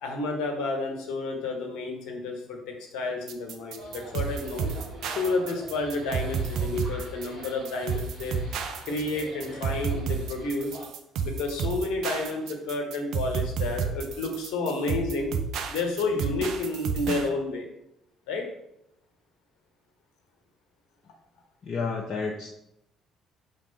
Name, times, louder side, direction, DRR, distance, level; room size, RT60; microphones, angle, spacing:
voice 1, 0.0-4.7 5.1-8.4 8.8-10.8 11.2-15.3 15.7-17.7 18.3-18.4, left 3 dB, 65° left, 3 dB, 1.3 m, -30 dB
sound 1, 3.3-17.3, right 6 dB, 60° right, 0.6 m, -31 dB
sound 2, 3.8-10.9, equal, 80° right, 2.0 m, -44 dB
voice 2, 21.6-22.6, left 4 dB, 50° left, 0 dB, 0.7 m, -31 dB
5.1 x 3.6 x 5.7 m, 0.79 s
hypercardioid pair, 50°, 0 cm